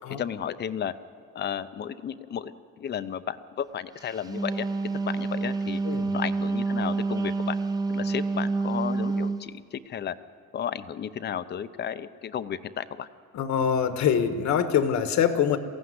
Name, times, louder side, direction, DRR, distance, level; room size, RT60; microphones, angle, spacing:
voice 1, 0.2-0.9 1.3-2.5 2.8-4.7 5.1-5.8 6.1-7.6 7.9-10.2 10.5-13.1, left 9 dB, 35° left, 13 dB, 0.7 m, -33 dB
Wind instrument woodwind instrument, 4.1-9.4, right 3 dB, 10° right, 0.7 m, -28 dB
voice 2, 13.3-15.6, left 8 dB, 60° left, 9 dB, 1.4 m, -24 dB
22.5 x 16.0 x 9.6 m, 2.3 s
cardioid pair, 175°, 32 cm